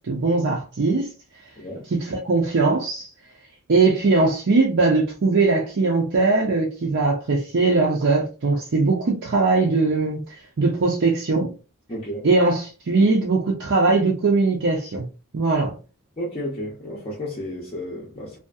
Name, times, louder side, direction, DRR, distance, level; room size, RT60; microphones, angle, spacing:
voice 1, 0.1-1.1 2.0-3.1 3.7-11.5 12.2-15.1 15.3-15.7, right 3 dB, 55° right, 0.5 m, -20 dB
voice 2, 1.6-1.9 11.9-12.3 16.2-18.4, equal, 25° left, 0.6 m, -32 dB
2.7 x 2.4 x 2.3 m
head